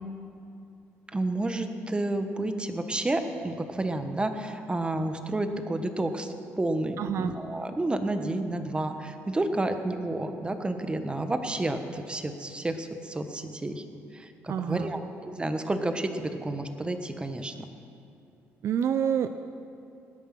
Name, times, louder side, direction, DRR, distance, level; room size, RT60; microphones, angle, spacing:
voice 1, 1.1-13.8 14.1-17.7, right 2 dB, 20° right, 7 dB, 1.3 m, -30 dB
voice 2, 7.0-7.3 14.5-14.9 18.6-19.3, right 8 dB, 60° right, 9 dB, 0.5 m, -27 dB
19.5 x 9.4 x 6.1 m, 2.5 s
supercardioid pair, 75°, 5 cm